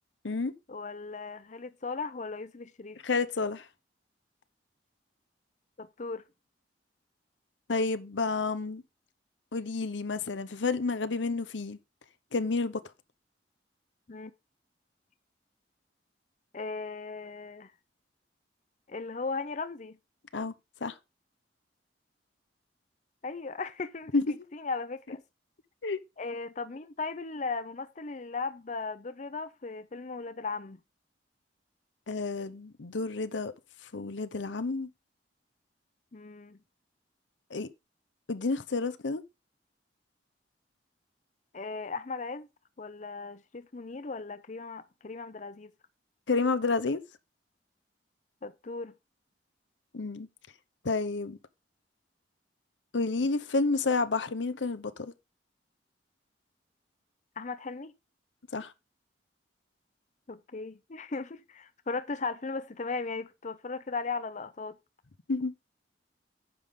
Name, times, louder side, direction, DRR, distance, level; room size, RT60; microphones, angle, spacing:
voice 1, 0.7-3.0 5.8-6.2 14.1-14.3 16.5-17.7 18.9-20.0 23.2-24.2 24.5-25.2 26.2-30.8 36.1-36.6 41.5-42.5 42.8-45.7 48.4-48.9 57.4-57.9 60.3-64.8, left 4 dB, 40° left, 0.6 m, -37 dB
voice 2, 3.0-3.7 7.7-8.8 9.5-11.8 12.3-12.8 20.3-20.5 20.8-21.0 24.1-24.3 25.8-26.0 32.1-33.5 33.9-34.9 37.5-37.7 38.3-39.2 46.3-47.0 49.9-50.3 50.8-51.4 52.9-55.1 58.5-58.7 65.3-65.5, left 3 dB, 90° left, 0.8 m, -30 dB
9.5 x 3.6 x 6.8 m
head